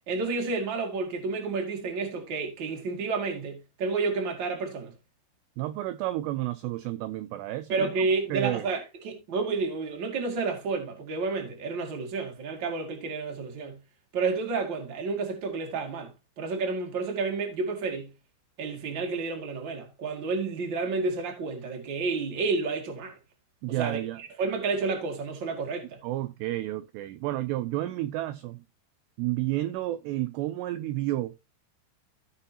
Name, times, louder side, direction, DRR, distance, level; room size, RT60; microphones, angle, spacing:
voice 1, 0.1-4.9 7.7-13.8 14.1-16.1 16.4-18.1 18.6-23.2 23.7-26.0, right 4 dB, 35° right, 1.9 m, -30 dB
voice 2, 5.6-7.9 8.3-8.7 23.6-24.2 26.0-28.6 29.2-31.4, right 15 dB, 85° right, 2.4 m, -31 dB
16.0 x 5.7 x 2.8 m
omnidirectional pair, 5.4 m